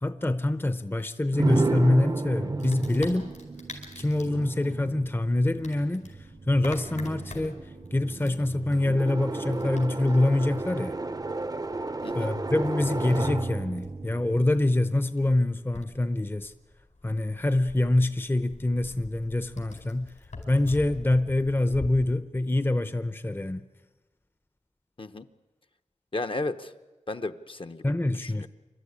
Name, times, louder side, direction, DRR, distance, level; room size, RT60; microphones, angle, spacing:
voice 1, 0.0-3.3 4.0-6.1 6.5-7.6 7.9-11.0 12.1-16.5 17.0-20.1 20.5-23.6 27.8-28.5, left 1 dB, 15° left, 0.7 m, -25 dB
sound 1, 1.3-15.2, right 2 dB, 30° right, 0.7 m, -33 dB
Wood, 2.6-21.9, left 3 dB, 75° left, 5.1 m, -47 dB
voice 2, 26.1-26.7 27.1-27.8 28.2-28.5, left 2 dB, 45° left, 0.9 m, -33 dB
27.0 x 13.0 x 9.8 m
wide cardioid pair, 85°, 13 cm